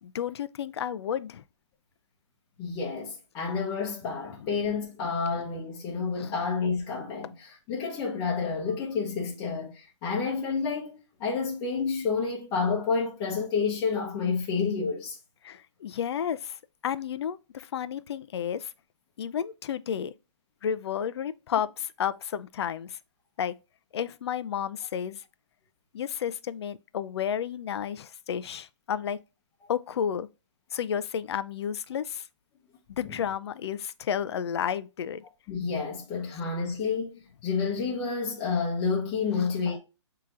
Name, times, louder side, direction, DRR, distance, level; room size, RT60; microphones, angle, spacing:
voice 1, 0.0-1.4 6.2-6.3 15.4-16.6 16.8-18.7 19.2-20.1 20.6-23.0 23.4-23.5 23.9-25.2 25.9-29.2 29.7-30.3 30.7-32.3 32.9-35.2, left 8 dB, 55° left, 0.4 m, -31 dB
voice 2, 2.6-15.2 35.5-37.1 37.4-39.8, left 5 dB, 25° left, 0.8 m, -29 dB
7.3 x 2.8 x 2.4 m
hypercardioid pair, 145°, 16 cm